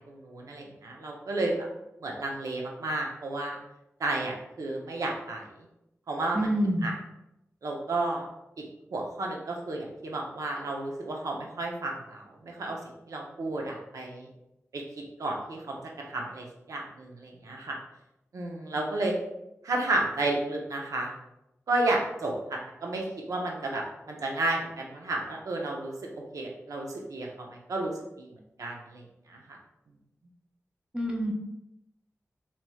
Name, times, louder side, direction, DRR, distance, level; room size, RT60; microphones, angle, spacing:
voice 1, 0.0-1.7 2.0-3.6 4.0-5.7 6.1-6.5 6.8-6.9 7.6-8.2 8.6-8.7 8.9-12.8 13.1-14.3 14.7-14.8 15.2-17.8 18.3-19.1 19.6-21.1 21.7-25.9 26.3-28.3 28.6-29.6, right 2 dB, 90° right, 0 dB, 0.5 m, -32 dB
voice 2, 6.3-6.8 30.9-31.3, equal, 15° right, -1 dB, 0.8 m, -27 dB
3.1 x 2.9 x 2.2 m, 0.88 s
cardioid pair, 40°, 6 cm